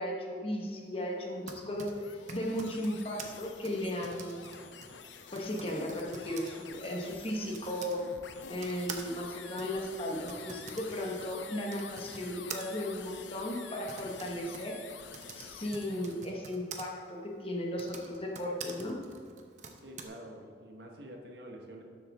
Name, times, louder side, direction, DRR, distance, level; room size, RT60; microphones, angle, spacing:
voice 1, 0.0-4.4 5.3-8.0 8.5-14.8 15.3-19.0, equal, 30° left, -1 dB, 1.1 m, -36 dB
Typing, 1.2-8.0 8.6-16.8 17.6-20.0, right 5 dB, 40° right, 0.9 m, -47 dB
sound 1, 1.7-16.3, left 6 dB, 80° left, 0.7 m, -49 dB
voice 2, 19.8-21.8, right 1 dB, 60° right, 1 dB, 1.3 m, -47 dB
12.0 x 7.8 x 3.5 m, 2.1 s
head